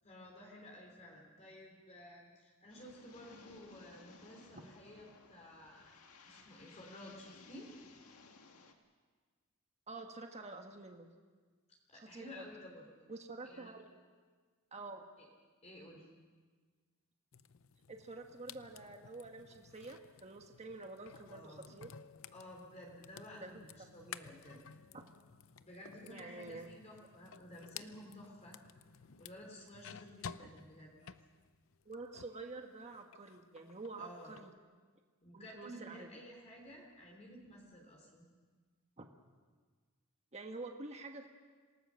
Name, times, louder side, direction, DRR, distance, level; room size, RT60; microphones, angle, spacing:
voice 1, 0.0-5.9 6.3-7.7 11.9-12.8 13.4-13.7 15.6-16.1 21.3-21.7 22.3-24.6 25.6-28.6 29.2-31.0 34.0-34.3 35.2-38.2, equal, 30° left, -1 dB, 3.4 m, -53 dB
sound 1, 2.7-8.7, left 4 dB, 85° left, 2.0 m, -59 dB
voice 2, 9.9-11.1 11.9-12.5 13.1-13.9 14.7-15.0 17.9-21.9 23.4-23.5 23.8-23.9 24.9-25.0 26.0-26.7 31.8-34.5 35.3-36.1 39.0-39.1 40.3-41.3, right 3 dB, 30° right, 4 dB, 1.4 m, -48 dB
sound 2, 17.3-32.5 32.8-34.5, left 7 dB, 65° left, 0.6 m, -54 dB
27.0 x 18.5 x 6.4 m, 1.5 s
head